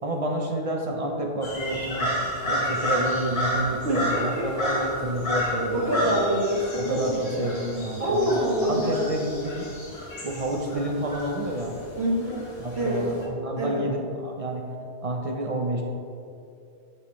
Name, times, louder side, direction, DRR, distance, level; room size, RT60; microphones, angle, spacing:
voice 1, 0.0-6.2 6.7-8.3 8.6-9.7 10.2-11.8 12.6-14.7 15.0-15.8, right 1 dB, 35° right, 2 dB, 0.8 m, -29 dB
sound 1, 1.4-13.2, equal, 80° left, 1.6 m, -31 dB
voice 2, 3.8-4.4 5.7-7.6 8.0-9.1 11.9-12.4 12.8-13.0 13.6-13.8, equal, 80° right, -8 dB, 1.6 m, -26 dB
9.6 x 5.9 x 3.1 m, 2.5 s
omnidirectional pair, 1.1 m